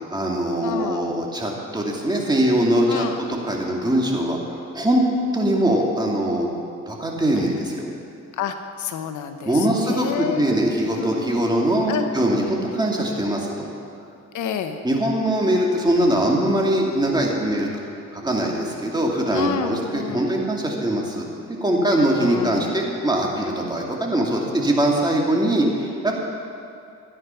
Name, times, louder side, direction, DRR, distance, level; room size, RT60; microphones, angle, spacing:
voice 1, 0.1-5.0 5.3-6.5 6.9-7.8 9.5-13.7 14.8-17.7 18.1-26.1, right 1 dB, 15° right, -2 dB, 2.4 m, -22 dB
voice 2, 0.6-1.1 2.9-3.2 8.4-10.5 10.9-11.4 11.9-12.1 14.3-14.8 19.3-20.3 22.2-22.8, left 8 dB, 75° left, 8 dB, 0.9 m, -29 dB
13.5 x 9.7 x 5.8 m, 2.5 s
cardioid pair, 90°, 30 cm